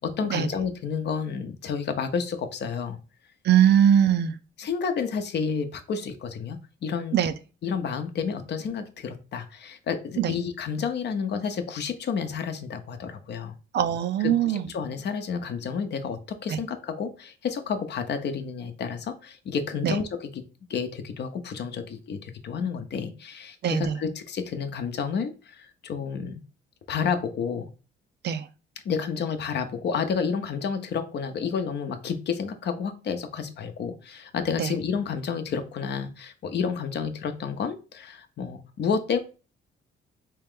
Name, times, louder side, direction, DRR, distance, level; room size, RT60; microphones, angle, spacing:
voice 1, 0.0-3.0 4.6-7.2 7.6-13.5 14.2-20.4 20.7-26.4 26.9-27.7 28.8-39.2, left 6 dB, 60° left, 8 dB, 0.7 m, -30 dB
voice 2, 3.4-4.3 7.1-7.3 10.2-10.3 13.7-14.7 16.5-16.6 19.8-20.0 23.6-24.0 28.2-28.5 34.6-34.7, right 9 dB, 60° right, 12 dB, 0.4 m, -21 dB
3.3 x 2.9 x 3.6 m, 0.34 s
cardioid pair, 90°, 20 cm